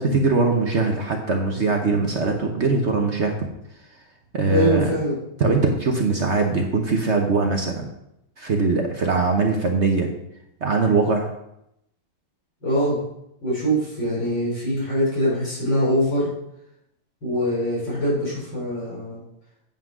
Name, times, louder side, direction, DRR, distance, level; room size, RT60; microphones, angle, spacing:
voice 1, 0.0-3.3 4.3-4.9 5.4-7.9 8.4-10.1 10.6-11.3, right 4 dB, 45° right, 3 dB, 1.0 m, -21 dB
voice 2, 4.5-5.2 12.6-13.0 13.4-16.3 17.2-19.2, equal, 65° left, -8 dB, 5.0 m, -23 dB
8.9 x 5.7 x 6.1 m, 0.80 s
omnidirectional pair, 2.2 m